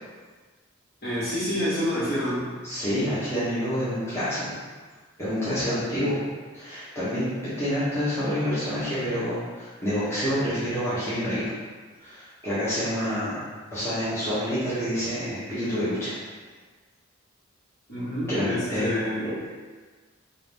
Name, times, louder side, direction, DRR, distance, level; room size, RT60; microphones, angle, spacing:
voice 1, 1.0-2.5 17.9-19.3, equal, 50° left, -10 dB, 1.5 m, -28 dB
voice 2, 2.6-4.5 5.2-6.2 6.5-7.2 7.6-11.5 12.0-13.4 13.7-16.1 18.3-18.9, equal, 15° left, -13 dB, 1.1 m, -27 dB
3.7 x 2.6 x 3.5 m, 1.4 s
head